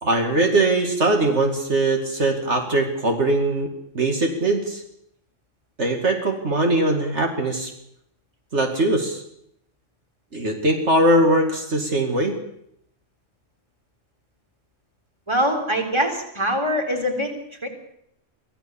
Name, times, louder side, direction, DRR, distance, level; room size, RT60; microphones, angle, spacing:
voice 1, 0.0-3.7 3.9-4.8 5.8-7.7 8.5-9.2 10.3-12.4, right 1 dB, 65° right, 3 dB, 2.6 m, -21 dB
voice 2, 15.3-17.3 17.6-17.7, equal, 20° right, 3 dB, 3.7 m, -23 dB
24.5 x 16.5 x 7.1 m, 0.74 s
omnidirectional pair, 1.3 m